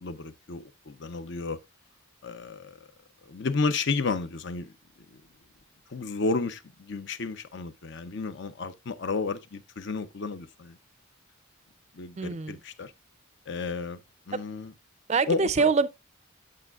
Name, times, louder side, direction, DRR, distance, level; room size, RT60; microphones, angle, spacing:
voice 1, 0.0-1.6 2.2-2.9 3.2-4.7 5.1-5.2 5.9-10.8 11.9-12.9 13.5-14.0 14.3-14.7 15.3-15.7, left 4 dB, 55° left, 0.6 m, -32 dB
voice 2, 12.2-12.5 15.1-15.9, right 4 dB, 30° right, 0.4 m, -24 dB
8.5 x 7.4 x 2.3 m
head